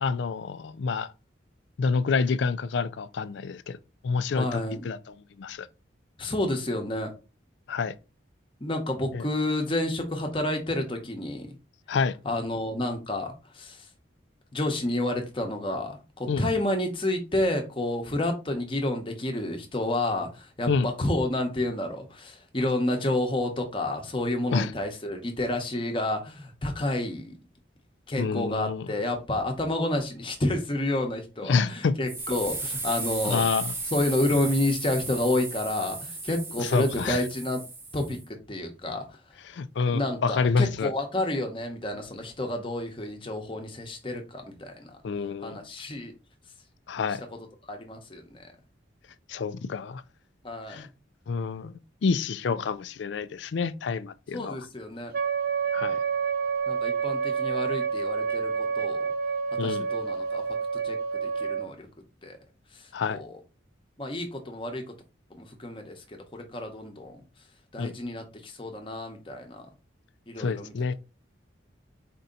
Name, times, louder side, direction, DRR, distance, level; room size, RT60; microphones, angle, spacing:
voice 1, 0.0-1.1 1.8-3.8 4.0-5.7 7.7-7.9 9.1-9.3 11.9-12.2 16.3-16.5 20.7-20.9 24.5-24.7 28.2-28.9 31.5-32.0 33.2-33.7 36.6-37.2 39.4-40.9 45.0-45.6 46.9-47.2 49.3-50.0 50.7-50.9 51.3-51.7 52.0-54.6 55.7-56.0 59.6-59.9 62.9-63.2 67.8-67.9 70.4-70.9, left 5 dB, 70° left, 0.4 m, -28 dB
voice 2, 4.3-4.9 6.2-7.1 8.6-11.5 12.2-13.9 14.5-27.3 28.1-33.4 33.9-37.6 37.9-39.0 39.9-44.9 45.4-46.1 47.7-48.4 50.4-50.8 54.3-55.1 56.7-59.1 59.6-60.6 60.8-61.0 61.4-61.9 62.2-62.4 62.7-62.8 63.1-63.3 64.0-64.8 65.4-67.1 67.7-69.6 70.3-70.9, left 1 dB, 25° left, 0.9 m, -30 dB
sound 1, 32.1-38.2, right 3 dB, 15° right, 0.7 m, -35 dB
Wind instrument woodwind instrument, 55.1-61.7, right 6 dB, 50° right, 0.5 m, -28 dB
4.4 x 2.8 x 3.8 m
head